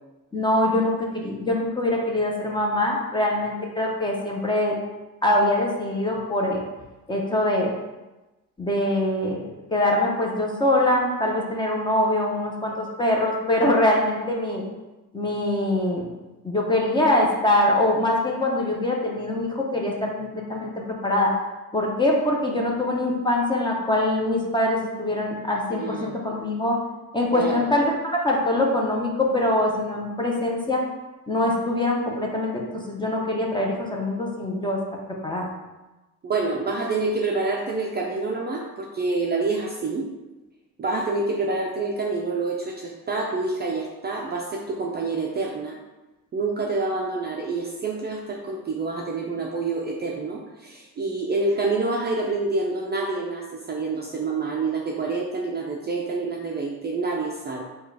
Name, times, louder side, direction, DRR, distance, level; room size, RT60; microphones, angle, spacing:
voice 1, 0.3-4.7 5.2-6.6 7.1-7.7 8.6-9.4 9.7-14.6 15.1-16.1 16.4-20.7 21.0-21.3 21.7-26.8 27.1-30.8 31.3-34.8 35.2-35.5, left 1 dB, 15° left, -2 dB, 0.7 m, -23 dB
voice 2, 25.7-26.2 27.3-27.7 36.2-40.1 40.8-45.8 46.3-57.6, right 3 dB, 30° right, -1 dB, 0.5 m, -27 dB
4.6 x 2.4 x 4.6 m, 1.1 s
cardioid pair, 135°, 36 cm